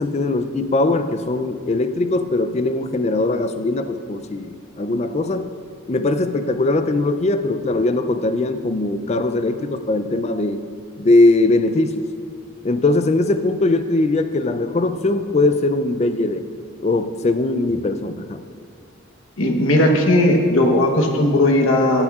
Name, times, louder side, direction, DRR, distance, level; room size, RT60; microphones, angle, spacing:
voice 1, 0.0-5.5 5.9-10.6 11.0-12.0 12.6-16.4 16.8-18.4, left 2 dB, 30° left, 10 dB, 0.4 m, -20 dB
voice 2, 19.4-22.0, left 1 dB, 80° left, 2 dB, 1.1 m, -16 dB
16.5 x 8.7 x 2.4 m, 2.2 s
head